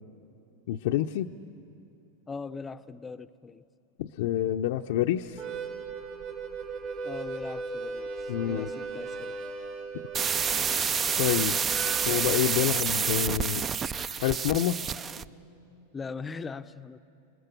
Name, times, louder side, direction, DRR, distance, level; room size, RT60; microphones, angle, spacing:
voice 1, 0.7-1.3 4.0-5.4 8.3-8.7 10.6-10.9 11.2-11.6 12.1-13.7 14.2-14.8, left 12 dB, 65° left, 4 dB, 0.6 m, -28 dB
voice 2, 2.3-3.7 7.0-9.4 15.9-17.0, left 4 dB, 15° left, 11 dB, 0.6 m, -40 dB
Harmonica, 5.3-12.6, right 4 dB, 55° right, 5.5 m, -38 dB
sound 1, 5.4-11.5 12.1-12.3 12.6-13.4 14.3-14.4, right 4 dB, 85° right, 2.9 m, -59 dB
sound 2, 10.1-15.3, right 6 dB, 25° right, 0.4 m, -28 dB
28.5 x 20.0 x 6.8 m, 2.9 s
hypercardioid pair, 125°, 0 cm